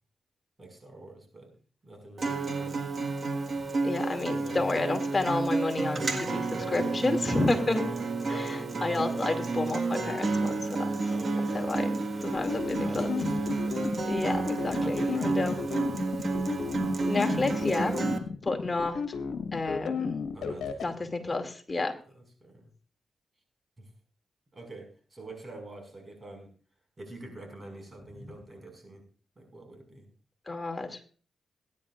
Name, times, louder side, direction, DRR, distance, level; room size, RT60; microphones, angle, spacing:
voice 1, 0.6-1.6 1.8-2.9 4.3-5.0 5.9-8.8 11.0-13.8 14.7-15.8 20.3-21.1 22.1-22.7 23.8-23.9 24.5-26.5 27.0-29.0 29.4-30.1, right 1 dB, 35° right, 4 dB, 5.4 m, -46 dB
Acoustic guitar, 2.2-18.2, right 3 dB, 50° right, 1.7 m, -31 dB
voice 2, 3.8-6.1 6.3-7.8 8.3-10.9 11.5-12.0 12.2-13.1 14.0-15.5 17.1-17.9 18.4-19.0 19.5-20.2 20.8-21.9 30.5-31.0, left 2 dB, 30° left, 4 dB, 2.4 m, -30 dB
sound 1, 12.3-20.8, left 5 dB, 85° left, 1.3 m, -33 dB
21.0 x 10.0 x 2.5 m, 0.41 s
cardioid pair, 65°, 0 cm